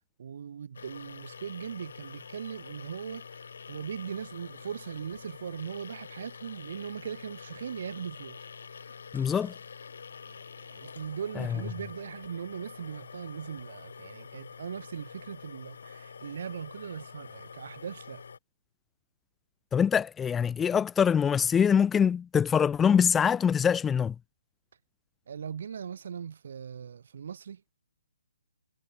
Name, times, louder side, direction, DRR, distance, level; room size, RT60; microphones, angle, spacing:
voice 1, 0.2-3.2 3.7-8.4 10.3-18.2 25.3-27.6, right 7 dB, 55° right, 2.5 m, -39 dB
sound 1, 0.7-18.4, left 6 dB, 65° left, 6.5 m, -46 dB
voice 2, 9.1-9.5 11.4-11.5 19.7-24.1, left 7 dB, 10° left, 0.5 m, -24 dB
figure-of-eight pair, 140°, 0 cm